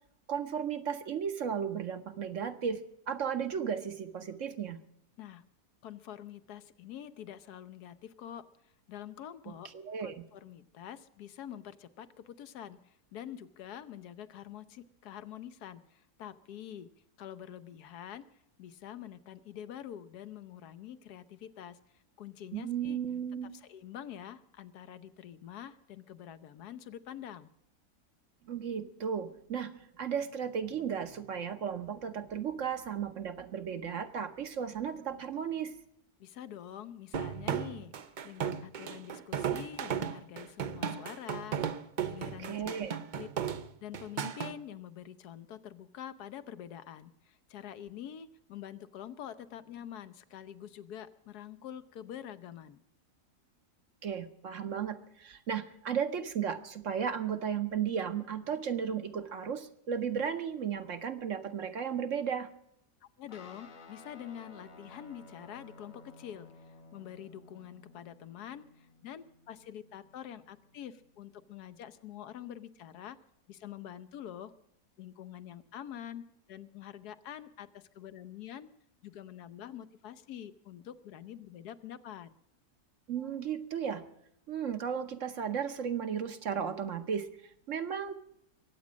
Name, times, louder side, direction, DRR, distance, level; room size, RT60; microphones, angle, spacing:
voice 1, 0.3-4.8 9.7-10.2 22.5-23.5 28.4-35.7 42.4-43.0 54.0-62.5 83.1-84.0 84.5-88.1, right 7 dB, 55° right, 9 dB, 1.2 m, -35 dB
voice 2, 5.2-5.5 5.8-9.7 10.0-18.2 18.6-23.0 23.5-27.5 36.2-42.7 43.1-43.3 43.8-52.8 63.0-73.2 73.5-74.5 75.0-78.7 79.0-82.3, left 10 dB, 75° left, 15 dB, 1.3 m, -46 dB
sound 1, 37.1-44.5, right 8 dB, 85° right, 0.4 m, -35 dB
Guitar, 63.3-72.0, left 3 dB, 35° left, 1.0 m, -56 dB
22.5 x 8.6 x 6.2 m, 0.76 s
omnidirectional pair, 1.7 m